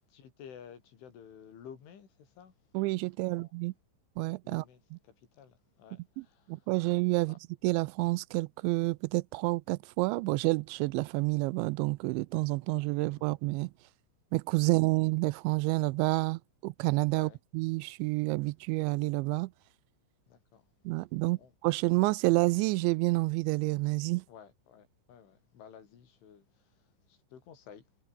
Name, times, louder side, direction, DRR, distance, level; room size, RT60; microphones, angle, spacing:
voice 1, 0.1-2.6 3.2-3.5 4.4-6.7 7.2-7.4 13.2-13.3 14.6-14.7 17.1-17.4 20.3-20.7 21.2-21.5 24.3-27.9, left 8 dB, 80° left, 6.5 m, -53 dB
voice 2, 2.7-3.7 4.2-4.6 4.9-5.0 6.5-7.4 7.6-13.7 14.3-19.5 20.9-24.2, right 23 dB, 85° right, 2.7 m, -29 dB
omnidirectional pair, 5.5 m